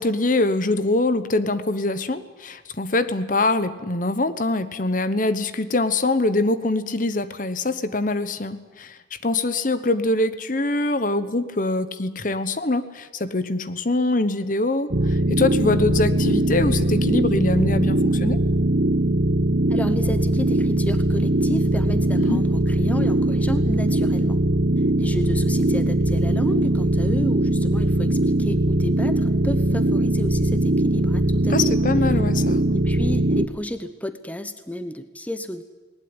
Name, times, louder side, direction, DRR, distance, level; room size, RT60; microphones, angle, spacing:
voice 1, 0.0-18.4 22.2-22.4 31.5-32.6, left 2 dB, 45° left, 12 dB, 1.1 m, -23 dB
sound 1, 14.9-33.5, right 1 dB, 60° right, 1.1 m, -21 dB
voice 2, 19.7-24.4 25.0-31.7 32.7-35.6, left 1 dB, 10° left, 10 dB, 0.9 m, -31 dB
20.0 x 19.5 x 9.8 m, 1.3 s
head